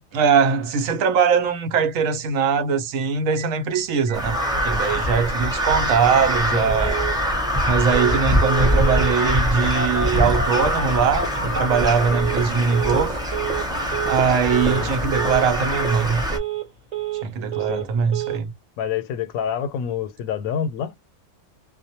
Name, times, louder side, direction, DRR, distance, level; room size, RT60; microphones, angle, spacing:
voice 1, 0.1-7.0 7.6-13.2 14.1-16.2 17.2-18.5, right 6 dB, 80° right, 1.0 m, -21 dB
Telephone, 3.0-3.1 3.4-3.5 3.7-3.8 4.1-4.5 4.8-4.9 5.1-5.5 5.9-6.0 6.5-7.2 7.9-8.2 8.4-9.2 9.8-12.5 12.7-13.1 13.3-13.7 13.9-14.3 14.5-14.9 15.1-15.5 15.7-16.1 16.3-17.3 17.5-17.9 18.1-18.4, right 8 dB, 35° right, 0.9 m, -29 dB
Crow, 4.1-16.4, equal, 5° right, 0.5 m, -23 dB
voice 2, 6.5-6.9 14.6-14.9 17.7-17.9 18.8-20.9, left 8 dB, 90° left, 1.0 m, -28 dB
2.4 x 2.1 x 2.7 m
omnidirectional pair, 1.4 m